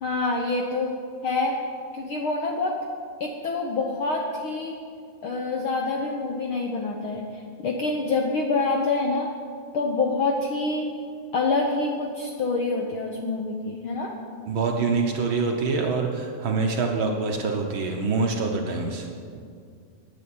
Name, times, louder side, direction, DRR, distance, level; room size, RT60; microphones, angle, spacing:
voice 1, 0.0-0.9 1.2-1.5 1.9-2.8 3.2-4.7 5.2-9.3 9.7-10.9 11.3-14.1, left 3 dB, 70° left, 0 dB, 1.3 m, -26 dB
voice 2, 14.5-19.1, right 4 dB, 70° right, 2 dB, 1.2 m, -25 dB
11.0 x 9.0 x 8.6 m, 2.3 s
omnidirectional pair, 3.5 m